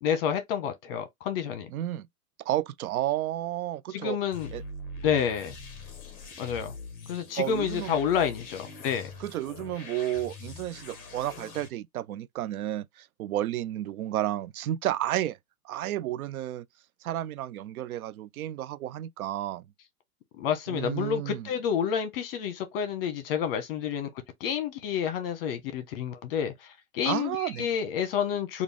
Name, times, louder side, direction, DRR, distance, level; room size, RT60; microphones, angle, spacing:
voice 1, 0.0-1.7 3.9-4.5 5.0-5.5 6.4-6.7 7.1-9.1 20.4-24.1 24.4-26.5 26.9-28.6, left 8 dB, 40° left, 1.1 m, -29 dB
voice 2, 1.7-2.1 2.4-4.2 4.5-4.6 7.4-7.9 9.2-15.4 15.6-16.7 17.0-19.6 20.7-21.5 27.0-27.7, right 13 dB, 70° right, 0.5 m, -32 dB
sound 1, 4.3-11.7, left 2 dB, 20° left, 0.9 m, -43 dB
3.7 x 2.5 x 3.4 m
hypercardioid pair, 150°, 44 cm